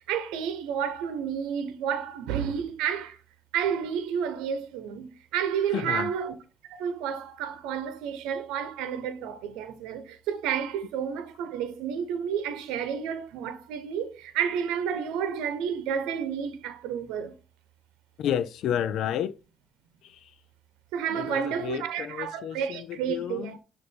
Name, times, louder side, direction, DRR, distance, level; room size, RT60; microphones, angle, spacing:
voice 1, 0.1-3.2 3.5-6.3 6.6-17.3 20.9-23.6, right 8 dB, 90° right, 0.8 m, -31 dB
voice 2, 5.7-6.1 18.2-19.4 20.0-20.3 21.1-23.6, left 9 dB, 75° left, 0.5 m, -31 dB
6.6 x 2.7 x 5.3 m
supercardioid pair, 75°, 0 cm